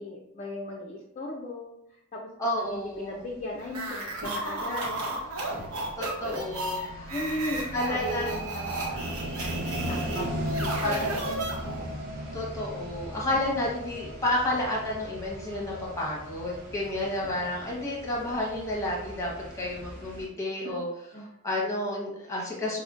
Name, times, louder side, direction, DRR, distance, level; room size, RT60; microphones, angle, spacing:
voice 1, 0.0-1.7 2.1-2.3 2.7-5.0 6.7-11.2 17.4-17.6 20.6-20.8 21.1-21.3, left 1 dB, 30° left, -2 dB, 0.4 m, -37 dB
voice 2, 2.4-3.2 6.0-7.2 7.7-8.3 10.8-11.0 12.3-20.9 21.4-22.8, left 1 dB, 15° left, -3 dB, 0.8 m, -31 dB
sound 1, 3.6-20.3, equal, 45° right, 0.7 m, -38 dB
sound 2, 3.7-12.0, right 1 dB, 90° right, 0.8 m, -34 dB
5.0 x 2.1 x 2.3 m, 0.80 s
head